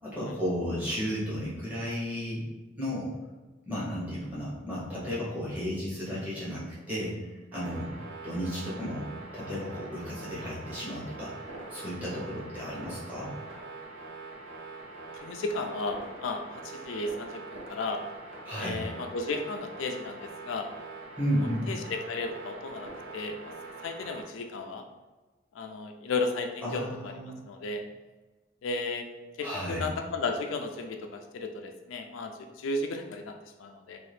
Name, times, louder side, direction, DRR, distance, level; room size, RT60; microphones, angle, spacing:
voice 1, 0.0-2.4 2.8-3.1 3.7-7.9 8.2-9.1 9.3-13.3 18.4-18.8 21.2-21.7 26.6-27.3 29.4-29.9, equal, 10° right, -9 dB, 1.0 m, -33 dB
sound 1, 7.5-24.2, right 3 dB, 80° right, 0.8 m, -44 dB
voice 2, 15.2-18.0 18.6-20.7 21.3-23.5 23.8-24.8 25.5-27.1 27.4-27.8 28.6-29.1 29.4-34.0, left 3 dB, 80° left, 4 dB, 0.3 m, -34 dB
2.7 x 2.4 x 3.3 m, 1.2 s
head